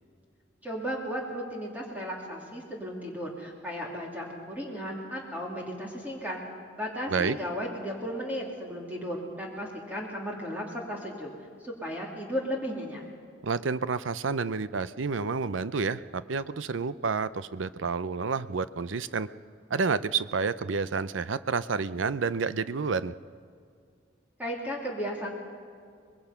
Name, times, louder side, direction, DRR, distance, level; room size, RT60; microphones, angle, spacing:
voice 1, 0.6-6.4 6.7-11.3 11.6-13.0 24.4-25.3, equal, 10° right, -2 dB, 2.7 m, -35 dB
voice 2, 13.4-19.3 19.7-23.1, right 5 dB, 85° right, 15 dB, 0.6 m, -29 dB
25.0 x 21.0 x 5.8 m, 2.3 s
head